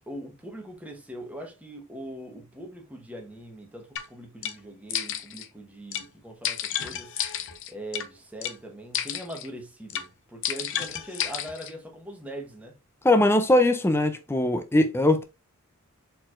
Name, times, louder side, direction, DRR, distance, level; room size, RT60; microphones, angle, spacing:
voice 1, 0.1-7.1 7.7-12.7, right 1 dB, 5° right, 1.1 m, -41 dB
sound 1, 4.0-4.1 4.4-4.6 4.9-5.5 5.9-6.1 6.4-8.1 8.4-8.6 8.9-9.5 9.9-10.1 10.4-11.7, left 10 dB, 60° left, 0.6 m, -31 dB
voice 2, 13.0-15.2, left 1 dB, 10° left, 0.4 m, -21 dB
4.4 x 3.9 x 2.5 m
head